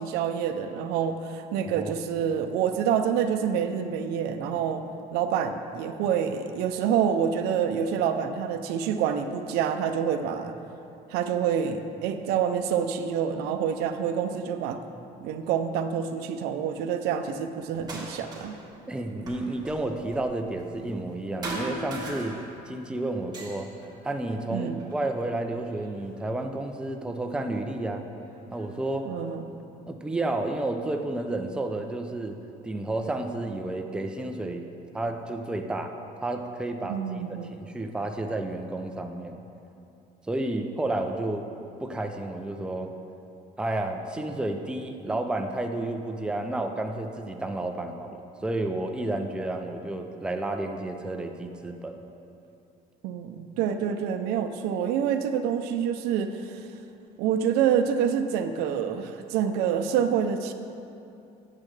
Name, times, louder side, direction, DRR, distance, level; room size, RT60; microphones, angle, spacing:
voice 1, 0.0-4.9 5.1-10.5 11.1-14.8 15.2-18.6 24.5-24.8 29.1-29.4 36.9-37.6 53.0-56.7 57.2-60.5, right 8 dB, 90° right, 8 dB, 0.5 m, -27 dB
sound 1, 17.7-18.7 18.9-21.2 21.4-22.8 23.1-25.0 25.7-26.6 27.5-27.6 28.2-29.3, right 2 dB, 25° right, 1.6 m, -40 dB
voice 2, 18.9-22.4 22.7-23.7 24.0-28.1 28.5-29.1 29.9-32.4 32.6-34.7 34.9-35.9 36.2-37.0 37.3-39.4 40.3-41.4 41.8-42.9 43.6-52.0, right 2 dB, 5° right, 4 dB, 0.4 m, -31 dB
8.4 x 7.5 x 3.2 m, 2.7 s
cardioid pair, 130°, 16 cm